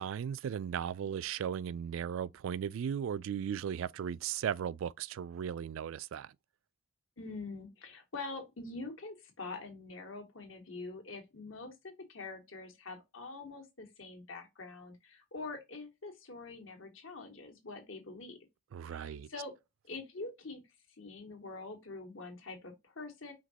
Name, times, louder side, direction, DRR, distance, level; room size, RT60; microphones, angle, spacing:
voice 1, 0.0-6.3 18.7-19.3, right 8 dB, 70° right, 0.3 m, -36 dB
voice 2, 7.2-18.4 18.9-19.5 19.9-20.6 21.0-23.3, left 3 dB, 70° left, 1.7 m, -45 dB
5.1 x 3.7 x 2.8 m
head